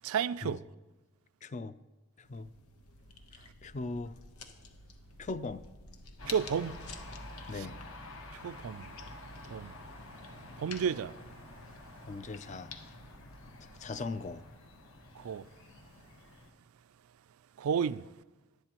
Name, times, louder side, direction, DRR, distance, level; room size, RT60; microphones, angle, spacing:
voice 1, 0.0-0.6 6.3-6.8 7.5-7.7 8.3-8.9 9.4-9.7 10.6-11.2 15.1-15.5 17.6-18.1, right 7 dB, 75° right, 0.3 m, -32 dB
voice 2, 1.4-1.8 2.2-2.5 3.3-4.1 5.2-5.7 7.5-7.8 12.1-13.0 13.6-14.4, left 3 dB, 30° left, 0.3 m, -40 dB
sound 1, 2.2-14.3, left 4 dB, 85° left, 1.0 m, -52 dB
sound 2, 6.2-16.5, left 1 dB, 65° left, 1.4 m, -49 dB
18.5 x 11.5 x 3.0 m
head